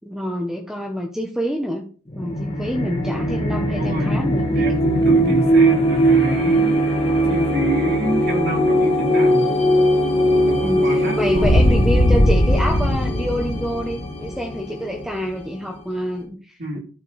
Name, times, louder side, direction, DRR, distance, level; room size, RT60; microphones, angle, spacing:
voice 1, 0.0-1.9 2.1-4.6 5.2-5.5 10.6-16.8, equal, ahead, 2 dB, 0.8 m, -27 dB
sound 1, 2.1-15.6, equal, 25° left, 1.5 m, -19 dB
voice 2, 3.8-4.2 4.5-6.9 7.2-9.5 10.5-11.7 16.6-16.8, right 1 dB, 45° right, 1 dB, 2.4 m, -27 dB
12.0 x 4.9 x 4.1 m, 0.39 s
head